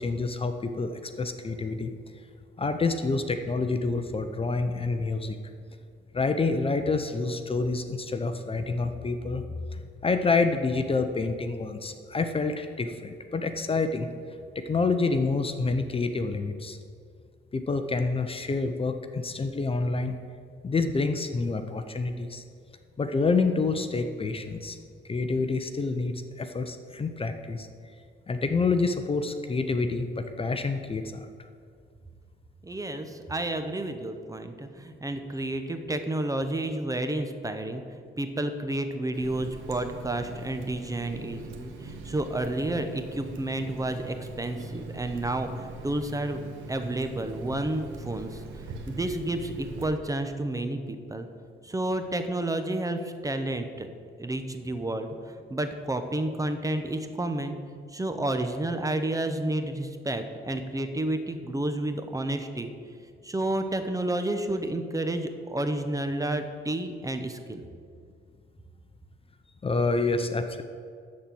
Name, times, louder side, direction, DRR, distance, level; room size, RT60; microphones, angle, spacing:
voice 1, 0.0-1.9 2.6-5.4 6.1-9.4 9.7-14.1 14.5-16.8 17.5-20.1 20.6-22.4 23.0-24.8 25.1-27.7 28.3-31.3 69.6-70.6, left 3 dB, 30° left, 8 dB, 0.7 m, -28 dB
voice 2, 32.6-46.4 46.7-48.4 48.9-51.3 51.6-53.9 54.2-57.6 57.9-62.7 63.2-67.6, right 1 dB, 15° right, 7 dB, 0.9 m, -30 dB
Water tap faucet, 39.1-49.8, right 2 dB, 85° right, 1.3 m, -41 dB
13.0 x 4.4 x 7.7 m, 2.2 s
cardioid pair, 90°, 20 cm